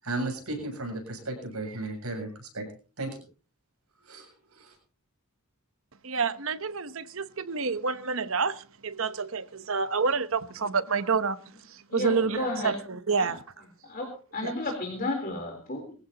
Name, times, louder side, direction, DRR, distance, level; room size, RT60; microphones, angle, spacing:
voice 1, 0.0-2.7 3.0-3.2 4.0-4.7, right 2 dB, 80° right, 7.7 m, -35 dB
voice 2, 6.0-11.4 11.9-12.7 13.1-13.4 14.4-14.5, right 5 dB, 60° right, 1.0 m, -28 dB
voice 3, 11.9-12.8 13.2-13.3 13.8-15.9, left 2 dB, 40° left, 3.8 m, -33 dB
22.5 x 15.5 x 2.9 m
head